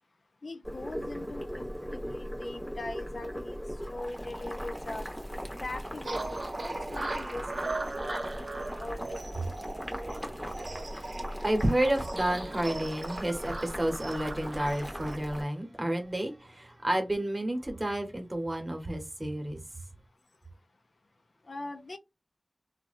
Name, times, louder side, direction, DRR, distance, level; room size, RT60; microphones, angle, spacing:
voice 1, 0.4-3.6 3.9-5.0 5.6-9.2 21.5-22.0, left 2 dB, 90° left, 0.4 m, -41 dB
Boiling, 0.6-15.4, equal, ahead, 0.8 m, -39 dB
sound 1, 6.0-15.2, right 2 dB, 70° right, 0.5 m, -39 dB
voice 2, 10.0-19.6, right 1 dB, 35° right, 1.0 m, -31 dB
2.8 x 2.2 x 2.5 m
wide cardioid pair, 50°, 0 cm